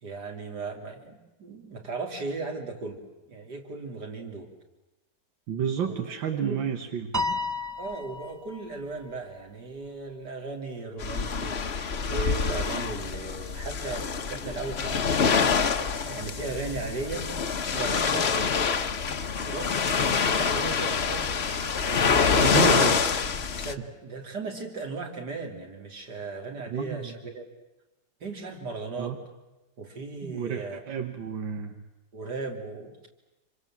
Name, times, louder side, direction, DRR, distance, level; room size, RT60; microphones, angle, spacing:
voice 1, 0.0-4.5 5.8-6.0 6.4-6.7 7.8-17.3 17.7-18.6 19.4-21.3 21.8-22.6 23.6-27.4 28.2-29.2 29.8-30.8 32.1-33.0, right 3 dB, 60° right, 2 dB, 3.7 m, -37 dB
voice 2, 5.5-7.4 20.6-20.7 22.3-23.0 23.8-23.9 26.7-27.2 29.0-29.2 30.2-31.8, right 8 dB, 85° right, 6 dB, 2.0 m, -31 dB
Piano, 7.1-8.7, left 2 dB, 20° right, 0.5 m, -31 dB
sound 1, 11.0-23.7, left 5 dB, 40° left, 1.1 m, -26 dB
26.5 x 25.5 x 7.5 m, 1.0 s
omnidirectional pair, 2.0 m